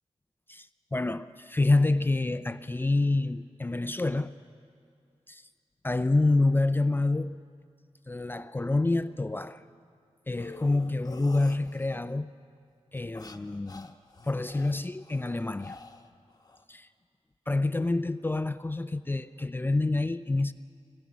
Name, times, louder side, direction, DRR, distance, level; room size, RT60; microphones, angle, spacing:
voice 1, 0.5-4.3 5.3-5.4 5.8-7.4 8.1-9.6 10.3-12.3 12.9-13.9 14.2-15.8 16.7-16.9 17.5-20.5, left 2 dB, 20° left, 0.4 m, -27 dB
sound 1, 10.3-12.1 13.0-16.6, left 3 dB, 35° left, 1.0 m, -48 dB
24.0 x 19.0 x 6.1 m
wide cardioid pair, 115°, 11 cm